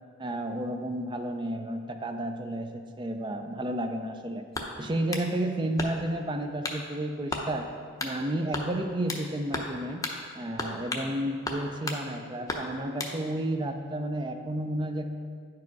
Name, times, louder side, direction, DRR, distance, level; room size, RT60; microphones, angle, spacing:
voice 1, 0.2-4.4 4.8-7.7 8.0-10.0 10.3-15.1, right 1 dB, 25° right, 6 dB, 0.4 m, -32 dB
sound 1, 4.5-5.3 5.8-6.2 6.6-6.8 7.3-7.5 8.0-8.2 8.5-9.3 9.5-9.8 10.0-10.2 10.6-11.1 11.5-12.0 12.5-13.2, left 2 dB, 15° left, 0.6 m, -34 dB
9.7 x 4.8 x 4.6 m, 2.1 s
head